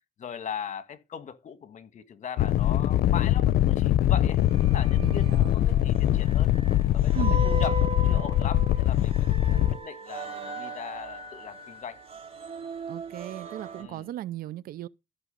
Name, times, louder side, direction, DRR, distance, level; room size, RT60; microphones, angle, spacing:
voice 1, 0.2-4.4 4.7-6.5 6.9-12.0 13.8-14.1, left 8 dB, 45° left, 1.5 m, -39 dB
sound 1, 2.4-9.8, left 13 dB, 65° left, 0.7 m, -23 dB
sound 2, 4.4-13.8, right 4 dB, 35° right, 3.4 m, -38 dB
voice 2, 5.0-5.5 7.1-7.5 12.9-14.9, right 13 dB, 60° right, 0.5 m, -36 dB
14.0 x 6.1 x 5.3 m
cardioid pair, 110°, 17 cm